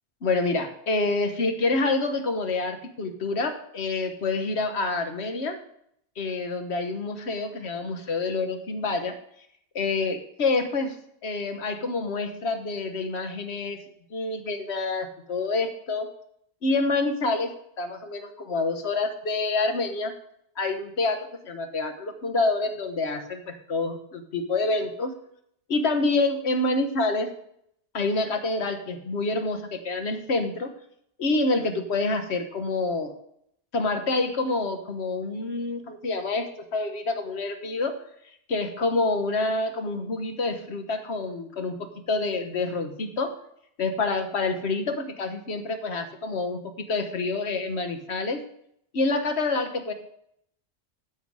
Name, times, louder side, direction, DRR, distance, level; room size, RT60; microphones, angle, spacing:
voice 1, 0.2-5.6 6.2-9.2 9.7-11.0 11.2-13.8 14.1-16.1 16.6-17.5 17.8-20.1 20.6-25.1 25.7-27.3 27.9-30.7 31.2-33.1 33.7-38.0 38.5-43.3 43.8-48.4 48.9-49.9, left 3 dB, 70° left, 7 dB, 1.4 m, -27 dB
9.4 x 7.1 x 4.8 m, 0.71 s
omnidirectional pair, 1.2 m